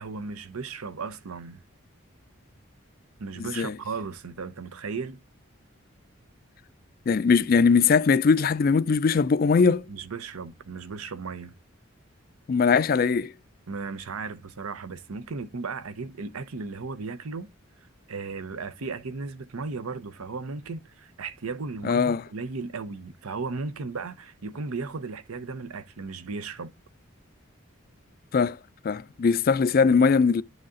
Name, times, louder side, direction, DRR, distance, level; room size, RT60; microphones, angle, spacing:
voice 1, 0.0-1.6 3.2-5.2 9.6-11.5 13.7-17.5 18.1-26.7, right 4 dB, 90° right, 0.7 m, -35 dB
voice 2, 3.4-3.7 7.1-9.8 12.5-13.3 21.8-22.2 28.3-28.6 28.8-30.4, left 5 dB, 45° left, 0.3 m, -21 dB
10.5 x 4.0 x 3.7 m
head